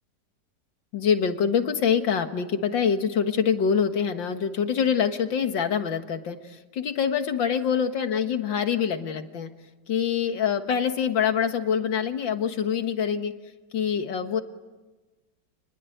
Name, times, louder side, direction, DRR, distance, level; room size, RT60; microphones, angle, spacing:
voice 1, 0.9-9.5 9.9-13.3 13.7-14.4, left 7 dB, 90° left, 7 dB, 2.3 m, -25 dB
29.5 x 20.5 x 9.3 m, 1.2 s
omnidirectional pair, 2.0 m